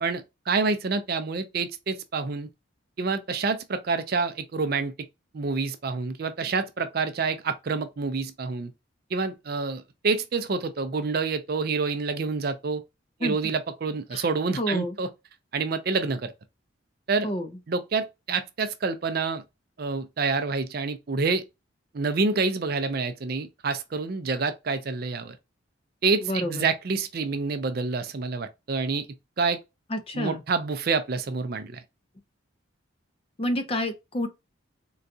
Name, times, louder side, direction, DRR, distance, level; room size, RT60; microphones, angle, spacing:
voice 1, 0.0-2.5 3.0-4.9 5.3-8.7 9.1-12.8 13.2-15.1 15.5-16.3 17.1-17.3 17.7-19.4 19.8-21.4 21.9-25.3 26.0-29.1 29.4-29.6 30.1-31.8, right 4 dB, 50° right, 0.4 m, -27 dB
voice 2, 14.6-15.0 17.2-17.5 26.2-26.7 29.9-30.4 33.4-34.3, left 1 dB, 30° left, 0.5 m, -28 dB
3.9 x 2.3 x 2.6 m
head